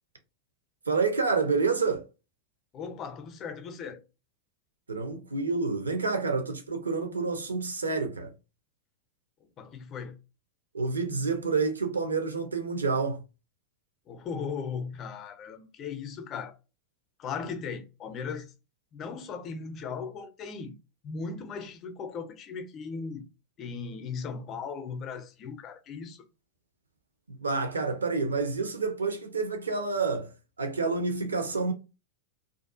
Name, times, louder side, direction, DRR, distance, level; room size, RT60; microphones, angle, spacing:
voice 1, 0.9-2.0 4.9-8.3 10.7-13.2 27.3-30.3 30.6-31.7, right 4 dB, 75° right, 0.5 m, -28 dB
voice 2, 2.7-4.0 9.6-10.2 14.1-16.6 17.2-18.5 18.9-20.7 21.0-23.2 23.6-26.2, left 5 dB, 30° left, 0.5 m, -37 dB
2.5 x 2.2 x 2.5 m
figure-of-eight pair, 90°, 0 cm